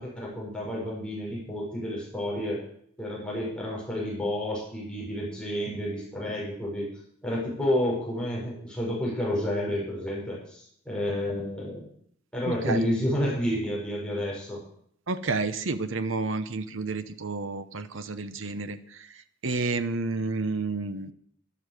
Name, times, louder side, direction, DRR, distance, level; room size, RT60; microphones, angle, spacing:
voice 1, 0.0-2.6 3.0-6.9 7.2-11.9 12.3-14.6, left 1 dB, 5° left, -5 dB, 5.7 m, -30 dB
voice 2, 12.5-12.8 15.1-19.1 19.4-21.1, right 3 dB, 65° right, 11 dB, 0.9 m, -30 dB
12.5 x 12.0 x 6.7 m, 0.66 s
head